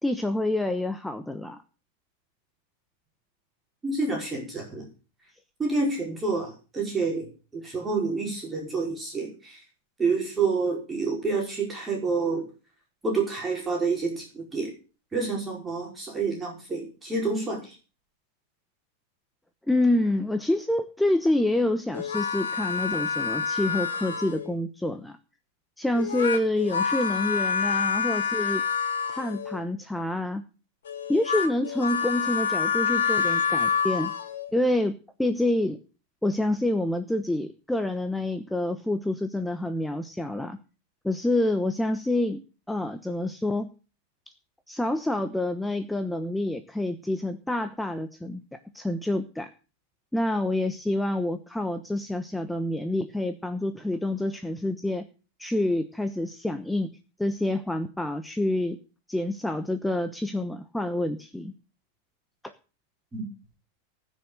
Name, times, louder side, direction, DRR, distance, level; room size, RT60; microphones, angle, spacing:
voice 1, 0.0-1.6 19.7-25.2 25.8-28.6 29.1-30.4 31.1-34.1 34.5-35.8 36.2-40.6 41.0-42.4 42.7-43.7 44.7-49.5 50.1-55.0 55.4-56.9 57.2-58.8 59.1-61.5 62.4-62.5, left 1 dB, 5° left, 9 dB, 1.0 m, -27 dB
voice 2, 3.8-4.9 5.6-9.6 10.0-12.5 13.0-14.7 15.1-17.8 63.1-63.3, right 4 dB, 15° right, -1 dB, 5.0 m, -28 dB
sound 1, 21.9-24.5 25.9-29.6 30.8-34.5, left 6 dB, 65° left, 2.0 m, -27 dB
19.0 x 6.5 x 6.5 m, 0.35 s
figure-of-eight pair, 90°, 0 cm